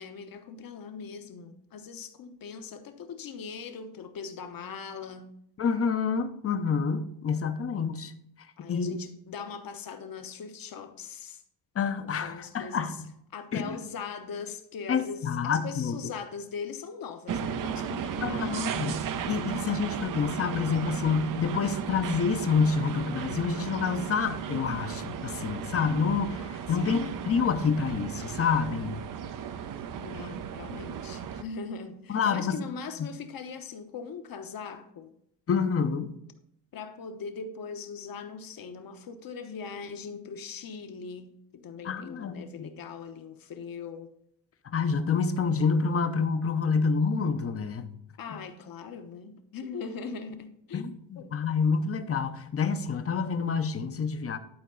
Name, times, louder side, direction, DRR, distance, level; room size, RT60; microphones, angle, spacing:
voice 1, 0.0-5.3 8.6-11.4 12.0-13.0 13.3-18.6 26.7-27.2 30.0-35.1 36.7-44.1 48.2-50.8 51.1-51.3, left 5 dB, 45° left, 1.0 m, -40 dB
voice 2, 5.6-8.1 8.7-9.0 11.8-12.9 13.5-13.8 14.9-16.0 18.2-29.0 32.1-32.6 35.5-36.1 41.8-42.7 44.7-47.9 50.7-54.4, left 5 dB, 30° left, 0.7 m, -28 dB
sound 1, 17.3-31.4, right 8 dB, 45° right, 0.6 m, -35 dB
11.5 x 4.5 x 3.9 m
cardioid pair, 115°, 46 cm